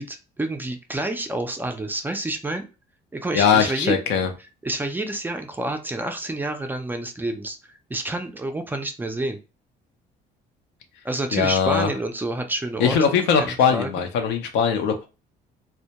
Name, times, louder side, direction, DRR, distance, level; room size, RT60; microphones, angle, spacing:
voice 1, 0.0-2.7 3.1-3.9 4.6-9.4 11.0-14.0, right 2 dB, 10° right, 5 dB, 0.3 m, -29 dB
voice 2, 3.3-4.3 11.3-11.9 12.8-15.1, left 7 dB, 90° left, 5 dB, 0.5 m, -20 dB
2.1 x 2.1 x 2.8 m, 0.29 s
cardioid pair, 110°, 17 cm